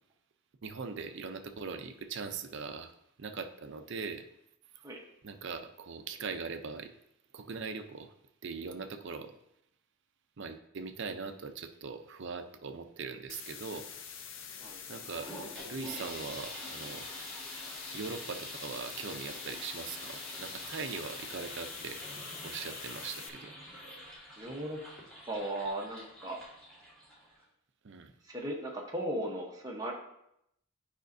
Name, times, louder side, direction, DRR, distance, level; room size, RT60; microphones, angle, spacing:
voice 1, 0.6-4.3 5.2-6.9 7.3-8.1 8.4-9.4 10.4-13.9 14.9-15.3 15.6-17.1 17.9-22.0 22.4-23.5 27.8-28.1, right 5 dB, 55° right, 8 dB, 0.5 m, -41 dB
sound 1, 13.3-23.3, left 7 dB, 65° left, 0.6 m, -46 dB
sound 2, 14.9-27.4, equal, 5° left, 1.8 m, -46 dB
voice 2, 24.4-24.8 25.3-26.4 28.3-29.9, right 1 dB, 15° right, -1 dB, 0.9 m, -37 dB
9.0 x 5.1 x 2.6 m, 0.78 s
head